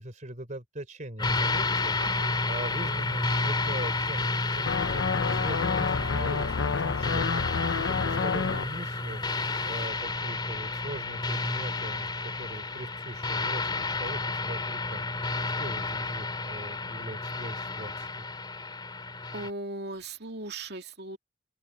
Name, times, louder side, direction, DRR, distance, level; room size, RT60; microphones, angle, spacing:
voice 1, 0.0-15.3 15.6-18.2, right 1 dB, 45° right, 3.9 m, -41 dB
sound 1, 1.2-19.5, left 3 dB, 25° left, 2.7 m, -31 dB
voice 2, 2.0-2.3 2.8-3.0 19.3-21.2, right 2 dB, 60° right, 2.5 m, -38 dB
sound 2, 4.6-8.7, left 5 dB, 75° left, 0.6 m, -29 dB
open air
head